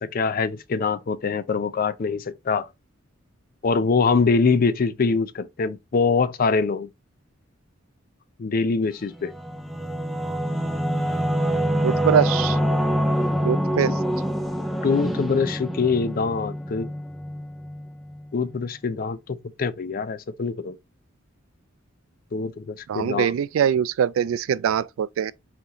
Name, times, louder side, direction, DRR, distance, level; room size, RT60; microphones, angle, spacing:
voice 1, 0.0-2.7 3.6-6.9 8.4-9.3 13.8-13.9 14.8-16.9 18.3-20.7 22.3-23.3, left 4 dB, 45° left, 0.4 m, -24 dB
Singing / Musical instrument, 9.1-18.3, equal, ahead, 0.6 m, -26 dB
voice 2, 11.8-12.6 13.4-13.9 22.9-25.3, right 8 dB, 85° right, 0.3 m, -23 dB
4.2 x 2.9 x 3.7 m
head